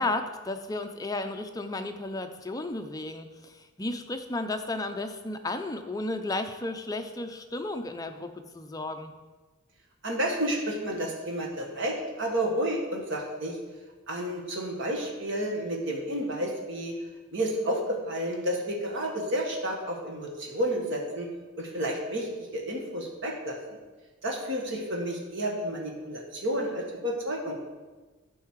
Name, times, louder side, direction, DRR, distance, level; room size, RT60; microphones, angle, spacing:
voice 1, 0.0-9.1, left 2 dB, 15° left, 7 dB, 0.5 m, -33 dB
voice 2, 10.0-13.6 14.1-16.9 17.3-17.8 18.1-21.3 21.6-23.6 24.2-27.6, right 1 dB, 60° right, 0 dB, 1.7 m, -31 dB
11.0 x 5.7 x 4.7 m, 1.3 s
head